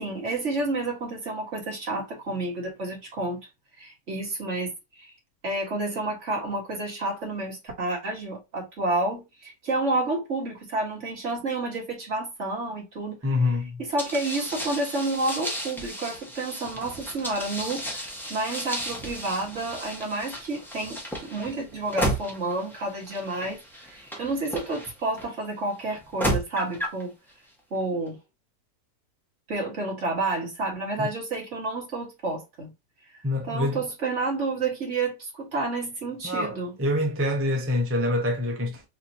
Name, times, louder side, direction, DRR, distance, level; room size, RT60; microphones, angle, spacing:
voice 1, 0.0-3.4 3.8-5.1 5.4-13.2 13.8-18.0 18.3-27.1 27.7-28.2 29.5-32.7 33.5-36.7, right 2 dB, 45° right, 1.8 m, -30 dB
voice 2, 13.2-13.8 31.0-31.1 33.2-33.8 36.2-38.8, left 2 dB, 20° right, 0.3 m, -26 dB
sound 1, 14.0-25.3 25.9-27.0, equal, ahead, 0.7 m, -33 dB
4.1 x 2.8 x 2.7 m
omnidirectional pair, 1.8 m